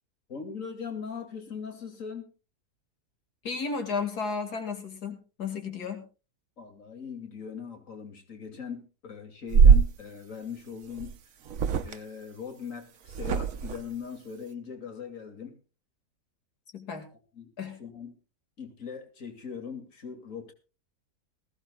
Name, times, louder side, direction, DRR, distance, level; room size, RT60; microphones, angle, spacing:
voice 1, 0.3-2.3 6.6-11.3 11.8-15.6 17.3-17.5 17.8-18.2 18.6-20.5, left 6 dB, 55° left, 6 dB, 2.9 m, -40 dB
voice 2, 3.4-6.0 16.7-17.1 17.6-17.8, left 5 dB, 85° left, 6 dB, 2.7 m, -33 dB
sound 1, 9.5-9.9 11.0-11.1 11.5-12.0 13.1-13.8, right 6 dB, 65° right, 1.2 m, -20 dB
20.0 x 16.0 x 2.3 m, 0.33 s
omnidirectional pair, 1.6 m